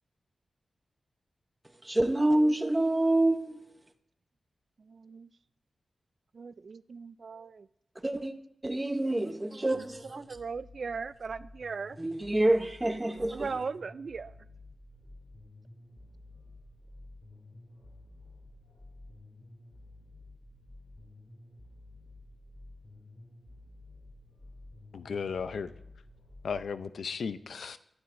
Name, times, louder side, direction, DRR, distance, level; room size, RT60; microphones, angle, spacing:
voice 1, 1.8-3.6 8.0-8.3 8.6-10.2 12.0-13.6, right 1 dB, 15° right, 0.8 m, -27 dB
voice 2, 4.8-5.3 6.3-7.7 9.8-9.9 10.1-12.0 13.1-14.3, right 5 dB, 55° right, 0.4 m, -38 dB
sound 1, 9.7-26.6, left 2 dB, 35° left, 2.6 m, -52 dB
voice 3, 24.9-25.7 26.4-27.8, left 6 dB, 90° left, 0.5 m, -35 dB
21.5 x 11.5 x 2.6 m
wide cardioid pair, 150°, 0 cm